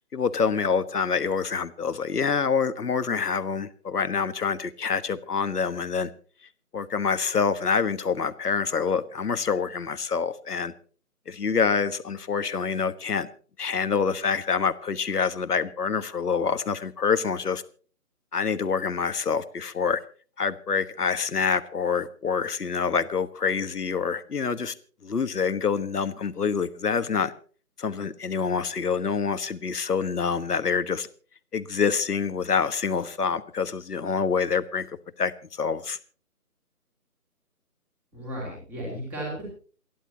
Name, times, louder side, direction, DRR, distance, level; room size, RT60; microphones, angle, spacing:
voice 1, 0.1-6.1 6.7-10.7 11.3-13.3 13.6-17.6 18.3-20.0 20.4-24.7 25.0-27.3 27.8-31.1 31.5-36.0, left 5 dB, 85° left, 12 dB, 1.5 m, -26 dB
voice 2, 38.1-39.5, right 1 dB, 5° right, -3 dB, 3.0 m, -34 dB
28.5 x 11.0 x 2.8 m, 0.41 s
hypercardioid pair, 175°, 46 cm